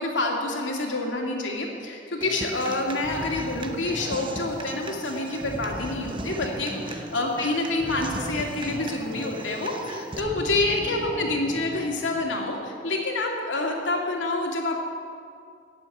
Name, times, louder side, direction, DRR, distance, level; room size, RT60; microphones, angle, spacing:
voice 1, 0.0-14.8, left 2 dB, 85° left, 0 dB, 2.5 m, -27 dB
Human voice / Acoustic guitar, 2.2-10.2, right 2 dB, 25° right, 0.8 m, -39 dB
sound 1, 3.0-12.6, equal, 5° right, 3.6 m, -39 dB
15.0 x 7.6 x 9.8 m, 2.3 s
head